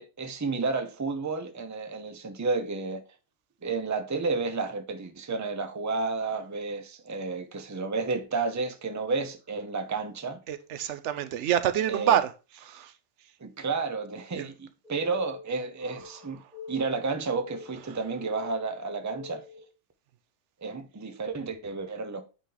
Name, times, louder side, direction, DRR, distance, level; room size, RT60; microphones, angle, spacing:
voice 1, 0.0-3.0 3.6-10.4 11.9-12.2 13.4-16.4 16.7-19.4 20.6-22.2, right 4 dB, 20° right, 0.6 m, -31 dB
voice 2, 10.5-12.3 12.6-12.9 14.4-14.5 17.9-18.0, right 10 dB, 85° right, 0.9 m, -27 dB
sound 1, 14.8-19.7, left 4 dB, 5° right, 1.6 m, -46 dB
8.9 x 3.1 x 3.8 m
omnidirectional pair, 1.2 m